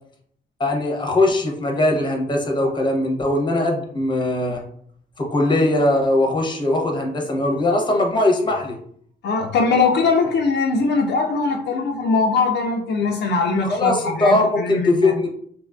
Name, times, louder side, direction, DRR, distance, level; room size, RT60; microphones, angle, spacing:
voice 1, 0.6-4.6 5.2-8.8 13.6-15.3, left 2 dB, 25° left, 1 dB, 0.7 m, -20 dB
voice 2, 9.2-15.1, left 4 dB, 60° left, 1 dB, 0.4 m, -21 dB
2.9 x 2.4 x 2.2 m, 0.62 s
cardioid pair, 90°, 20 cm